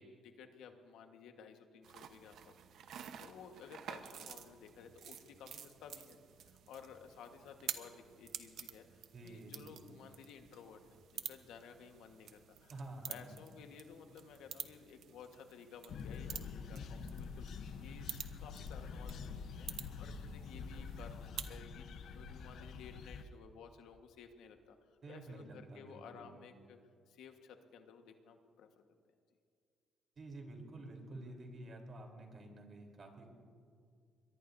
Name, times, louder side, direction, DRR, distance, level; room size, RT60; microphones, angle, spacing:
voice 1, 0.0-12.8 13.1-18.1 18.4-26.8 27.1-28.7, left 6 dB, 85° left, 5 dB, 1.4 m, -55 dB
sound 1, 1.8-21.6, right 9 dB, 70° right, 1.0 m, -50 dB
voice 2, 9.1-9.8 12.7-13.3 25.0-26.3 30.2-33.3, right 2 dB, 45° right, 2 dB, 3.6 m, -50 dB
sound 2, 15.9-23.2, left 5 dB, 70° left, 0.9 m, -46 dB
23.5 x 21.5 x 2.7 m, 2.2 s
cardioid pair, 105°, 0 cm